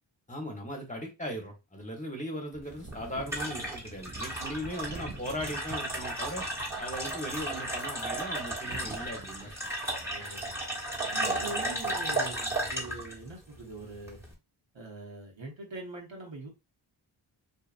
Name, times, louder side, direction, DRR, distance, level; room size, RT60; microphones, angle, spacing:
voice 1, 0.3-6.4 6.8-9.5 10.0-10.1, equal, 15° left, 1 dB, 1.0 m, -38 dB
sound 1, 2.5-9.8, right 3 dB, 25° right, 0.5 m, -48 dB
sound 2, 2.6-14.3, right 1 dB, 5° right, 1.2 m, -34 dB
voice 2, 10.1-10.6 11.1-14.2 14.7-16.5, right 2 dB, 70° right, 0 dB, 1.2 m, -42 dB
2.7 x 2.5 x 2.4 m, 0.25 s
wide cardioid pair, 50°, 47 cm